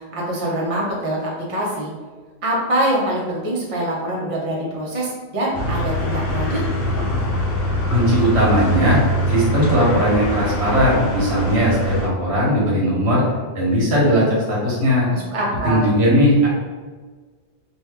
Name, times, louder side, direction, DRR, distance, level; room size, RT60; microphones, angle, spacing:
voice 1, 0.0-1.9 2.4-6.6 15.1-15.9, right 1 dB, 35° right, -5 dB, 0.8 m, -24 dB
sound 1, 5.5-12.1, equal, 65° left, 0.8 m, -23 dB
voice 2, 7.9-9.0 9.3-13.2 13.5-15.1 15.6-16.5, equal, 85° right, -5 dB, 1.4 m, -18 dB
2.8 x 2.6 x 3.5 m, 1.4 s
omnidirectional pair, 1.1 m